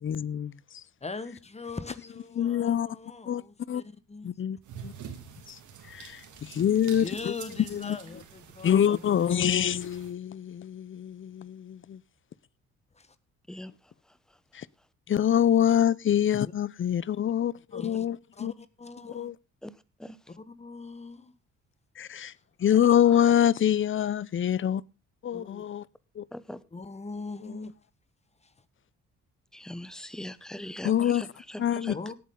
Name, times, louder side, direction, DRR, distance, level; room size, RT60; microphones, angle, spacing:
voice 1, 0.0-0.8 2.4-2.9 3.3-3.4 3.7-3.8 4.2-4.9 5.5-5.6 5.9-7.3 7.7-8.0 8.6-12.0 14.5-14.7 15.1-18.5 19.1-19.3 22.0-22.3 22.6-24.8 25.2-25.8 26.2-26.3 27.4-27.6 30.8-31.2 31.6-32.0, left 10 dB, 40° left, 0.7 m, -25 dB
voice 2, 1.0-4.3 6.3-6.6 6.9-9.9 12.9-13.1 17.7-18.1 18.4-19.3 20.4-21.3 22.1-22.2 25.3-25.6 26.7-27.8 28.4-28.5 31.9-32.1, left 3 dB, 20° left, 1.4 m, -41 dB
sound 1, 4.6-10.1, right 7 dB, 80° right, 2.8 m, -46 dB
voice 3, 13.5-14.2 19.6-19.7 20.0-20.2 23.1-23.3 26.3-26.6 29.5-32.0, left 1 dB, ahead, 0.9 m, -41 dB
17.5 x 8.7 x 3.8 m
cardioid pair, 90°, 30 cm